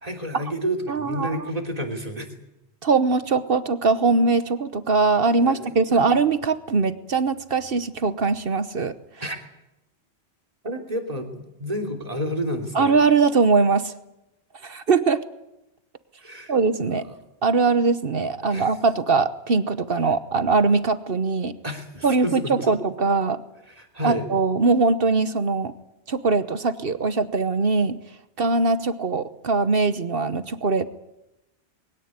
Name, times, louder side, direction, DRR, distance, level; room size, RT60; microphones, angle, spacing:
voice 1, 0.0-2.3 5.4-6.1 9.2-9.4 10.6-13.0 16.2-16.5 16.9-17.2 18.5-18.7 21.6-22.8 23.7-24.3, equal, 35° right, 7 dB, 3.2 m, -30 dB
voice 2, 0.9-1.5 2.8-8.9 12.7-13.9 14.6-15.2 16.5-17.1 17.4-21.6 22.0-23.4 24.0-25.7 26.1-28.0 28.4-30.9, right 4 dB, 60° right, 12 dB, 1.2 m, -21 dB
22.0 x 17.0 x 9.6 m, 0.91 s
omnidirectional pair, 1.1 m